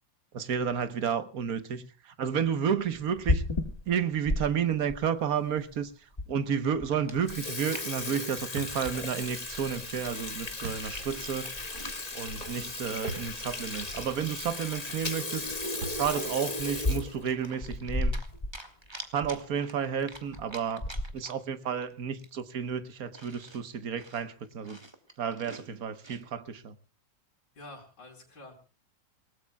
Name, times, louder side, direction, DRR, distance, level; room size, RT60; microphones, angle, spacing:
voice 1, 0.3-3.4 3.9-5.9 6.3-11.6 12.1-15.4 16.0-18.2 19.1-20.9 21.1-24.8 25.2-26.7, right 7 dB, 55° right, 1.5 m, -31 dB
Water tap faucet / Sink (filling or washing), 3.0-4.4 4.9-5.0 5.7-5.8 6.2-6.3 6.6-6.8 7.1-18.5 18.8-18.9 19.2-19.3 20.1-20.4 20.8-21.2, left 2 dB, 20° left, 1.6 m, -34 dB
Chewing mastication, 7.1-9.4 9.9-10.2 10.6-12.6 13.0-15.1 15.6-16.5 16.9-18.3 18.5-21.5 21.8-21.9 22.2-26.2, right 2 dB, 15° right, 1.7 m, -48 dB
sound 1, 8.6-8.9 10.6-10.9 13.1-13.4 14.0-14.1 15.8-16.3, right 4 dB, 85° right, 2.1 m, -39 dB
voice 2, 27.6-28.5, left 2 dB, 60° left, 4.4 m, -48 dB
27.5 x 18.0 x 2.3 m
omnidirectional pair, 2.1 m